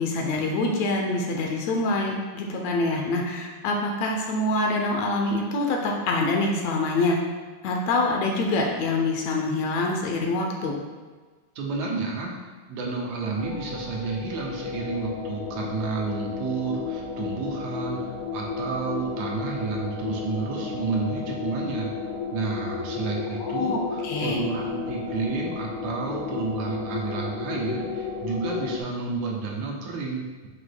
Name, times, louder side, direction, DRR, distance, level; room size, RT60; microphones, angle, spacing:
voice 1, 0.0-7.2 7.6-10.8 23.4-23.8 24.0-24.4, left 2 dB, 75° left, 1 dB, 1.9 m, -25 dB
voice 2, 11.6-12.3 12.7-21.9 22.3-30.5, right 4 dB, 80° right, -2 dB, 2.3 m, -30 dB
sound 1, 13.4-28.8, left 5 dB, 90° left, 2.2 m, -33 dB
7.9 x 5.9 x 2.2 m, 1.4 s
omnidirectional pair, 3.3 m